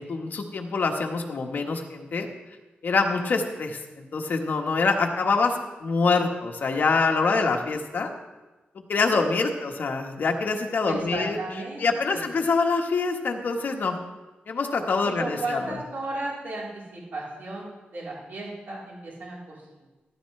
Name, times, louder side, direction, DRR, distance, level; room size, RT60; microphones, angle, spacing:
voice 1, 0.0-2.3 2.8-8.1 8.7-11.4 11.8-14.0 14.5-15.6, left 4 dB, 55° left, 2 dB, 1.4 m, -25 dB
voice 2, 10.9-12.2 15.0-19.9, right 2 dB, 65° right, -5 dB, 3.9 m, -35 dB
14.0 x 13.0 x 3.3 m, 1.2 s
wide cardioid pair, 150°, 4 cm